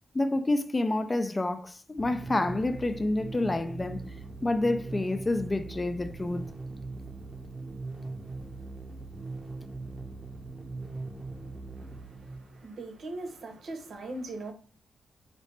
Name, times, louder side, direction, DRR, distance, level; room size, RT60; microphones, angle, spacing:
voice 1, 0.1-4.0 4.4-6.5, left 2 dB, 25° left, 0.4 m, -28 dB
sound 1, 2.0-12.7, right 3 dB, 20° right, 0.7 m, -40 dB
voice 2, 11.8-14.5, right 2 dB, 65° right, 0.9 m, -40 dB
4.1 x 2.8 x 3.3 m
cardioid pair, 85°, 0 cm